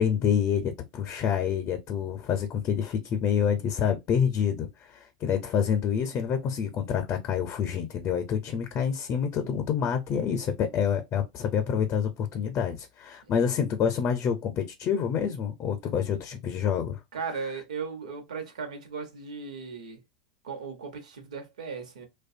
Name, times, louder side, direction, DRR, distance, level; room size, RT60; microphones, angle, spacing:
voice 1, 0.0-4.7 4.9-17.0, left 7 dB, 40° left, 0.5 m, -27 dB
voice 2, 17.1-20.0 20.4-22.1, right 5 dB, 90° right, 0.8 m, -37 dB
2.6 x 2.2 x 2.5 m
hypercardioid pair, 110°, 4 cm